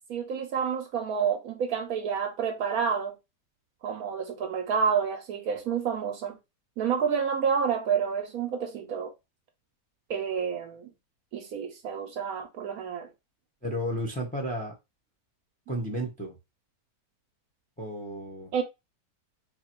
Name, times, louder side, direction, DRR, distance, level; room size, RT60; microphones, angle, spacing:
voice 1, 0.1-3.1 3.8-6.3 6.8-9.1 10.1-10.9 11.3-13.1 18.5-18.6, right 7 dB, 70° right, 0.9 m, -29 dB
voice 2, 13.6-14.7 15.7-16.3 17.8-18.5, equal, 10° left, 0.5 m, -32 dB
3.4 x 2.3 x 4.4 m
omnidirectional pair, 1.8 m